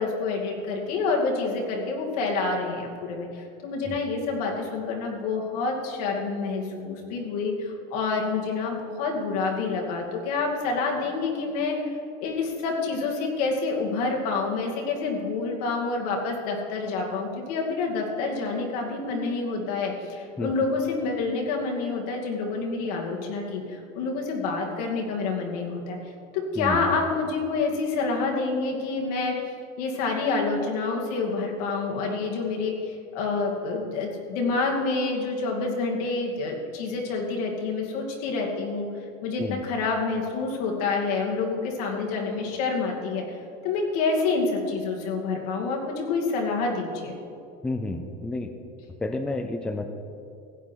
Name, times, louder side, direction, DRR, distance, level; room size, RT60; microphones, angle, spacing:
voice 1, 0.0-11.9 12.2-26.0 26.3-29.3 29.8-38.9 39.2-43.2 43.6-47.2, left 4 dB, 85° left, 0 dB, 2.4 m, -28 dB
voice 2, 47.6-48.5 49.0-49.9, left 2 dB, 5° left, 6 dB, 0.4 m, -30 dB
15.5 x 9.6 x 4.6 m, 2.5 s
cardioid pair, 175°, 19 cm